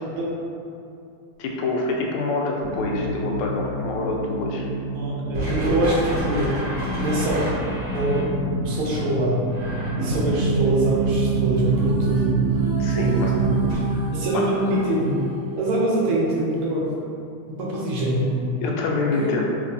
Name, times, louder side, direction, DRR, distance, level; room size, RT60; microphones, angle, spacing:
voice 1, 1.4-4.7 6.8-7.0 12.8-13.3 13.9-14.1 14.3-14.4 18.6-19.5, left 3 dB, 85° left, -1 dB, 1.5 m, -26 dB
sound 1, 2.6-13.7, right 3 dB, 30° right, 1.2 m, -26 dB
voice 2, 4.9-6.6 7.0-7.4 7.9-8.3 8.6-9.4 9.9-12.3 12.9-13.5 14.1-15.2 15.5-16.9 17.5-18.5 19.2-19.3, right 1 dB, 80° right, -4 dB, 1.5 m, -24 dB
sound 2, 11.6-17.0, equal, 60° right, 0.6 m, -38 dB
3.6 x 3.2 x 2.5 m, 2.6 s
omnidirectional pair, 2.4 m